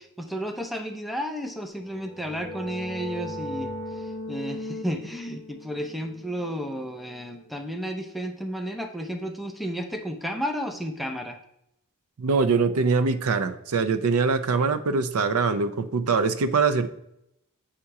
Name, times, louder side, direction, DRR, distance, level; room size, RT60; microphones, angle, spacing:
voice 1, 0.2-3.7 4.0-11.4, equal, ahead, 4 dB, 0.4 m, -32 dB
sound 1, 1.8-7.4, left 1 dB, 40° left, 0.7 m, -38 dB
voice 2, 12.2-16.9, right 4 dB, 75° right, 12 dB, 0.5 m, -23 dB
7.5 x 2.9 x 4.7 m, 0.79 s
head